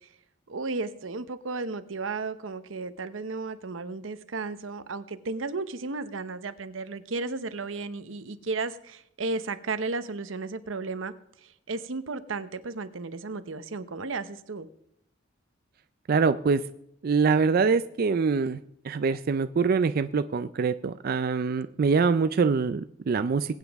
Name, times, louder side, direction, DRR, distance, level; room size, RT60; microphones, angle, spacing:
voice 1, 0.5-11.1 11.4-14.7, right 3 dB, 90° right, 12 dB, 0.8 m, -34 dB
voice 2, 16.1-16.6 17.0-18.6 18.8-23.6, right 5 dB, 50° right, 11 dB, 0.4 m, -24 dB
20.5 x 9.2 x 3.5 m, 0.75 s
head